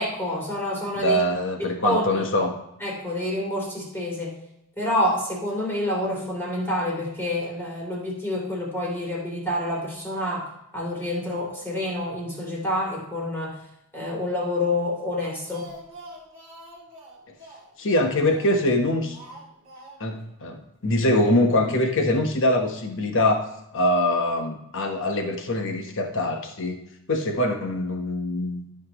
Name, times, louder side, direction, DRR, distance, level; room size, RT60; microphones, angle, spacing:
voice 1, 0.0-1.2 1.8-2.2 2.8-4.3 4.8-10.5 10.7-13.6 13.9-15.7, left 1 dB, 10° left, -3 dB, 3.1 m, -27 dB
voice 2, 1.0-2.5 17.8-19.2 20.0-26.8 27.1-28.6, left 1 dB, 60° left, 4 dB, 1.2 m, -23 dB
Speech, 15.2-18.7 19.1-20.3 20.5-20.6 20.9-21.0, right 1 dB, 25° right, 2.4 m, -46 dB
13.0 x 5.9 x 3.0 m, 0.82 s
head